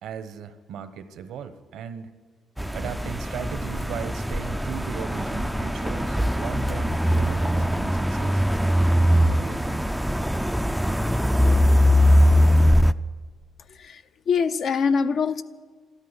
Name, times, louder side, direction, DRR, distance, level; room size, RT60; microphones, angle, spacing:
voice 1, 0.0-2.1 2.7-8.4 9.3-9.9, right 8 dB, 75° right, 10 dB, 1.1 m, -37 dB
sound 1, 2.6-12.9, equal, ahead, 0.4 m, -21 dB
voice 2, 13.6-15.4, left 5 dB, 55° left, 9 dB, 0.5 m, -24 dB
13.0 x 13.0 x 8.3 m, 1.5 s
cardioid pair, 125°, 0 cm